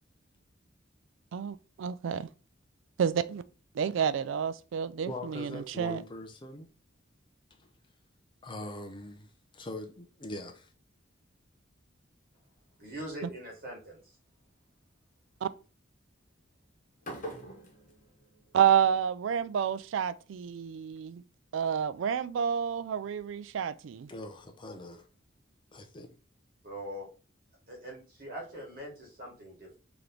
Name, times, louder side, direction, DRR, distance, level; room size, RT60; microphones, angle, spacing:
voice 1, 1.3-2.3 3.0-3.4 3.8-6.0 15.4-15.5 18.5-21.2 21.5-24.1, right 8 dB, 85° right, 0.3 m, -29 dB
voice 2, 5.1-6.7 7.5-7.7 8.4-10.7 24.1-25.1 25.7-26.1, left 1 dB, 25° left, 0.6 m, -42 dB
voice 3, 12.8-14.0 26.6-27.1 27.7-29.8, equal, 55° right, 1.7 m, -42 dB
sound 1, 17.0-19.1, right 1 dB, 45° left, 1.2 m, -44 dB
3.3 x 2.9 x 3.8 m
head